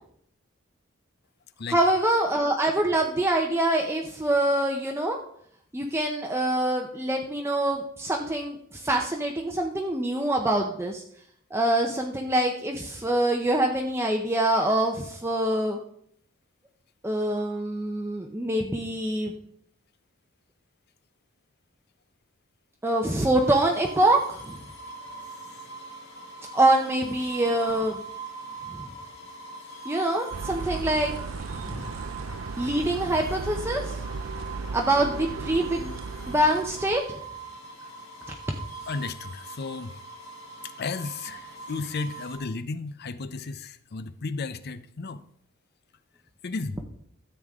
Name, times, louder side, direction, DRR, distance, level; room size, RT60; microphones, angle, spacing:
voice 1, 1.7-5.2 5.7-11.0 11.5-15.8 17.0-19.3 22.8-24.6 26.5-28.0 28.7-28.8 29.8-31.1 31.6-31.9 32.6-34.0 34.7-35.9 36.3-37.0, right 1 dB, 10° right, 1 dB, 0.8 m, -25 dB
sound 1, 23.4-42.4, right 3 dB, 80° left, 3.2 m, -42 dB
sound 2, 30.3-37.0, right 4 dB, 75° right, 0.5 m, -36 dB
voice 2, 38.9-39.9 40.8-45.2 46.4-46.8, left 4 dB, 50° left, 13 dB, 0.6 m, -34 dB
13.5 x 8.1 x 3.6 m, 0.66 s
head